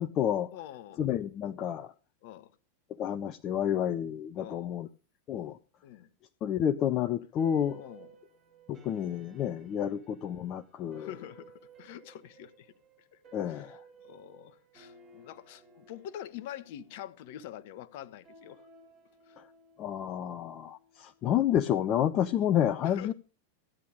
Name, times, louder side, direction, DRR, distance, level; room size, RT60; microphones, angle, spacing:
voice 1, 0.0-0.5 1.0-1.9 3.0-4.9 5.3-5.6 6.4-7.8 8.7-11.1 13.3-13.8 19.4-19.5 19.8-23.1, left 10 dB, 35° left, 0.6 m, -30 dB
voice 2, 0.5-1.1 2.2-2.5 4.4-4.7 5.8-6.1 7.8-8.1 9.8-10.0 10.9-13.2 13.5-18.7 19.3-19.4 22.3-22.4 22.8-23.1, left 11 dB, 50° left, 1.0 m, -46 dB
sound 1, 7.4-21.9, right 3 dB, 35° right, 7.5 m, -58 dB
15.0 x 10.5 x 5.1 m
figure-of-eight pair, 90°, 0 cm